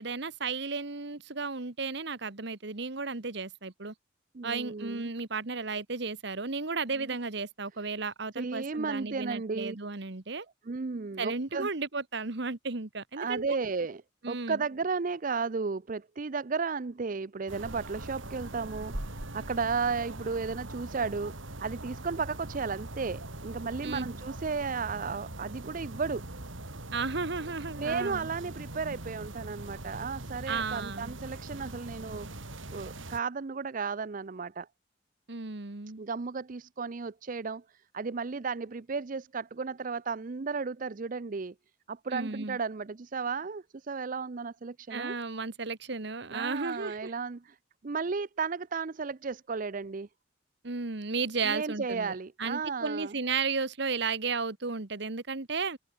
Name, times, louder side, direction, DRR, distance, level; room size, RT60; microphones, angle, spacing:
voice 1, 0.0-3.9 4.4-10.4 11.2-13.6 14.2-14.6 23.8-24.1 26.9-28.3 30.5-31.1 35.3-36.0 42.1-42.6 44.9-47.1 50.6-55.8, right 4 dB, 60° right, 1.4 m, -34 dB
voice 2, 4.3-5.1 7.0-7.1 8.4-9.8 10.6-11.7 13.2-14.0 14.3-21.3 21.6-26.3 27.8-32.3 32.7-34.7 36.0-37.6 37.9-41.5 41.9-45.1 46.3-47.6 47.8-50.1 51.4-53.2, right 4 dB, 45° right, 0.5 m, -34 dB
sound 1, 17.5-33.2, right 1 dB, 85° right, 3.6 m, -42 dB
head